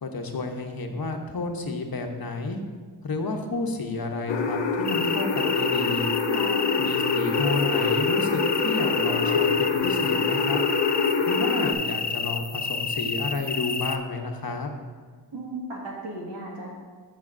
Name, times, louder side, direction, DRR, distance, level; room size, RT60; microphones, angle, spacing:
voice 1, 0.0-2.6 3.0-6.1 6.8-10.6 11.2-14.7, left 3 dB, 55° left, 4 dB, 1.0 m, -31 dB
sound 1, 4.3-11.7, left 5 dB, 85° left, 0.7 m, -25 dB
sound 2, 4.9-14.0, left 5 dB, 20° left, 0.4 m, -30 dB
voice 2, 6.3-6.9 15.3-16.7, right 2 dB, 85° right, -4 dB, 2.0 m, -36 dB
13.5 x 5.2 x 2.6 m, 1.5 s
cardioid pair, 45°, 44 cm